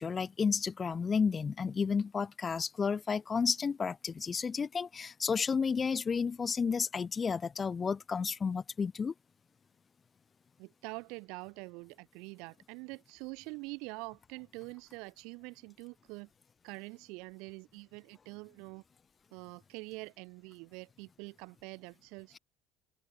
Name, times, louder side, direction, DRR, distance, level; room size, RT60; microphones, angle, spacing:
voice 1, 0.0-9.1, left 5 dB, 30° left, 0.7 m, -32 dB
voice 2, 10.6-16.3 16.6-18.8 19.3-22.4, right 28 dB, 60° right, 2.6 m, -45 dB
open air
figure-of-eight pair, 60°, 0 cm